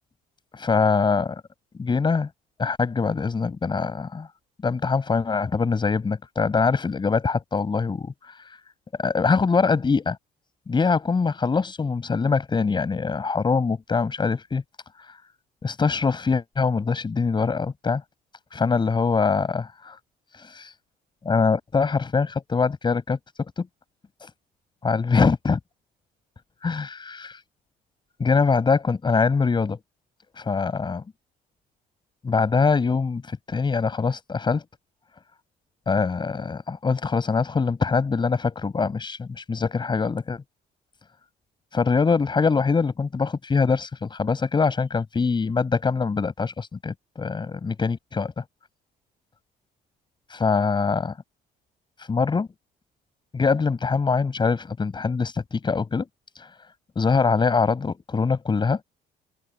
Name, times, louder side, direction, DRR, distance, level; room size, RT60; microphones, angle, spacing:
voice 1, 0.5-1.4 1.8-2.3 2.6-4.3 4.6-8.3 9.0-10.2 10.7-14.6 15.6-18.0 18.5-20.0 20.4-20.7 21.2-23.7 24.8-25.6 26.6-27.3 28.2-29.8 30.4-31.0 32.2-34.6 35.9-40.4 41.7-48.4 50.3-51.1 52.1-52.5 53.3-56.1 56.4-56.5 57.0-58.8, left 4 dB, 25° left, 6.1 m, -23 dB
cardioid pair, 110°, 17 cm